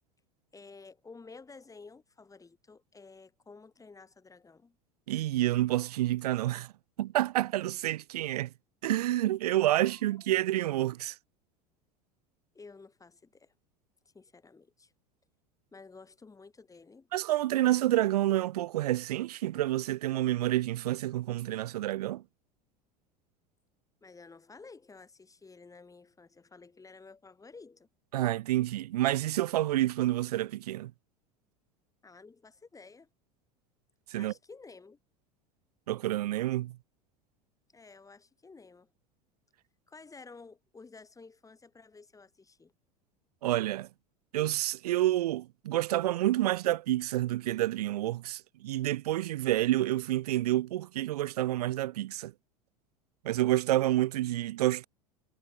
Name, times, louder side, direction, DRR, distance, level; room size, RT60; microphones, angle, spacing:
voice 1, 0.5-4.8 9.8-10.2 12.5-13.5 14.1-14.9 15.7-17.1 24.0-27.9 32.0-33.1 34.1-35.0 37.7-38.9 39.9-42.7, left 4 dB, 15° left, 6.5 m, -52 dB
voice 2, 5.1-6.7 7.0-8.5 8.8-11.2 17.1-22.2 28.1-30.9 34.1-34.3 35.9-36.8 43.4-43.9 44.3-52.3 53.2-54.9, right 14 dB, 75° right, 0.4 m, -29 dB
hypercardioid pair, 80°, 20 cm